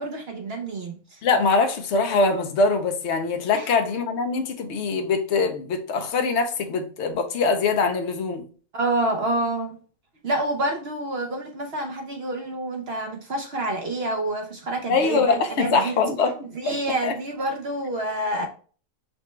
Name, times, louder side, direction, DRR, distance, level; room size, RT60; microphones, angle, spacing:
voice 1, 0.0-1.2 3.5-3.7 8.7-9.8 10.2-15.9 16.5-18.5, right 1 dB, 55° right, 0.8 m, -28 dB
voice 2, 1.2-8.4 14.9-16.8 17.0-17.1, left 4 dB, 60° left, 0.9 m, -23 dB
5.9 x 2.2 x 3.1 m
omnidirectional pair, 1.5 m